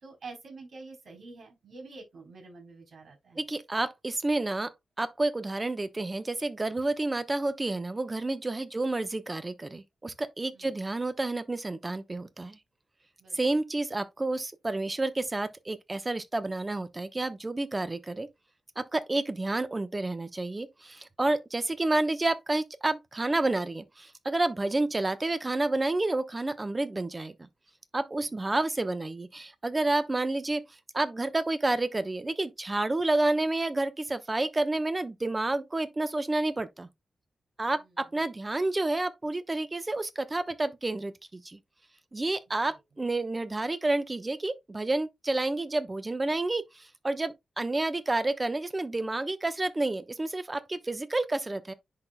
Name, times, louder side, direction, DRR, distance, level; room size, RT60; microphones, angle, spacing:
voice 1, 0.0-3.4 8.7-8.9 10.5-10.8 13.2-13.4 24.6-24.7 28.2-28.6 37.6-38.2 42.5-42.8, right 3 dB, 70° right, 3.9 m, -48 dB
voice 2, 3.4-4.7 5.0-12.6 13.3-18.3 18.8-27.5 27.9-30.6 30.9-36.9 37.6-41.6 42.1-51.7, right 2 dB, 25° right, 0.9 m, -30 dB
10.5 x 4.1 x 2.2 m
cardioid pair, 90°, 0 cm